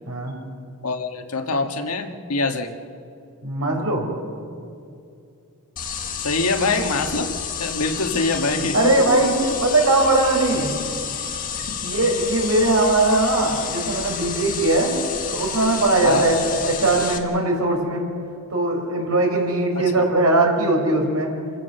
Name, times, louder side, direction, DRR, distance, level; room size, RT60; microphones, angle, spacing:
voice 1, 0.8-2.7 6.2-9.2 11.5-11.8 16.0-16.3 19.7-20.1, left 3 dB, 85° left, 5 dB, 1.5 m, -25 dB
voice 2, 3.4-4.1 8.7-10.7 11.8-14.9 15.3-18.0 18.5-21.3, right 2 dB, 75° right, 1 dB, 4.6 m, -20 dB
sound 1, 5.8-17.2, left 7 dB, 40° left, 1.4 m, -30 dB
27.5 x 15.0 x 6.7 m, 2.4 s
head